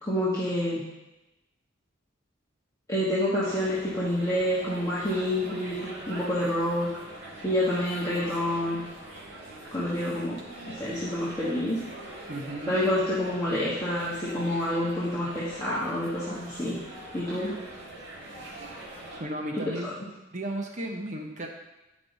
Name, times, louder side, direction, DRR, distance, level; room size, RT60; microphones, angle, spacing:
voice 1, 0.0-0.8 2.9-6.9 7.4-8.8 9.7-10.4 10.7-11.8 12.7-16.8 17.1-17.5, left 1 dB, 15° left, -10 dB, 1.4 m, -28 dB
sound 1, 3.4-19.2, right 1 dB, 60° right, 2.0 m, -43 dB
voice 2, 12.3-12.8 19.2-19.9 20.3-21.5, right 1 dB, 35° right, 1 dB, 0.9 m, -34 dB
10.5 x 5.2 x 4.1 m, 0.98 s
head